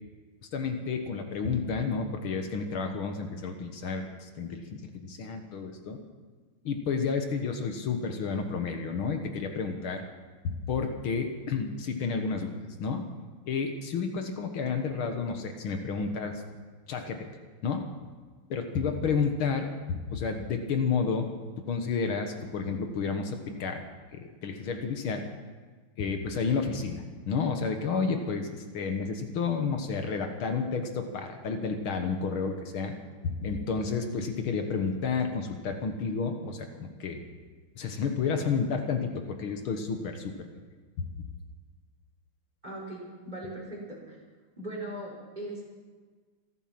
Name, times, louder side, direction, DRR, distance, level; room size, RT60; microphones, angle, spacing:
voice 1, 0.5-6.0 6.6-10.0 10.4-13.1 13.5-16.4 16.9-17.3 17.6-17.9 18.5-21.3 21.7-23.8 24.1-25.3 26.0-33.0 33.2-37.2 37.8-40.5 41.0-41.1, left 5 dB, 75° left, 5 dB, 2.1 m, -31 dB
voice 2, 42.6-44.2 44.6-45.6, right 1 dB, 20° right, -4 dB, 5.3 m, -39 dB
26.5 x 9.1 x 6.0 m, 1.4 s
omnidirectional pair, 2.3 m